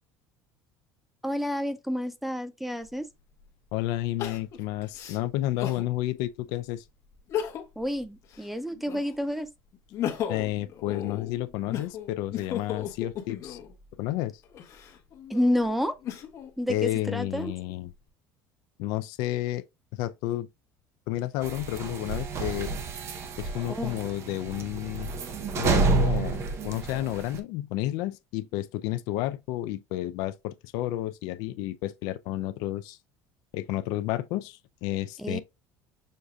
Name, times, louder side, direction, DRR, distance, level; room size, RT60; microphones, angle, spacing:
voice 1, 1.2-3.1 7.8-9.5 15.3-15.9 16.6-17.5 23.7-24.0 35.2-35.4, left 1 dB, ahead, 0.4 m, -29 dB
Crying sobbing, 2.8-2.9 4.2-5.9 6.4-6.5 7.2-7.9 8.2-9.3 9.7-13.7 14.4-16.5 17.1-17.9, left 9 dB, 45° left, 1.0 m, -36 dB
voice 2, 3.7-6.8 10.3-13.6 14.0-14.3 16.7-17.9 18.8-19.6 19.9-20.5 21.1-22.7 23.4-25.1 25.6-33.0 33.5-35.4, left 15 dB, 70° left, 0.4 m, -31 dB
sound 1, 21.4-27.4, right 3 dB, 40° right, 0.7 m, -29 dB
6.3 x 2.7 x 2.3 m
cardioid pair, 135°, 7 cm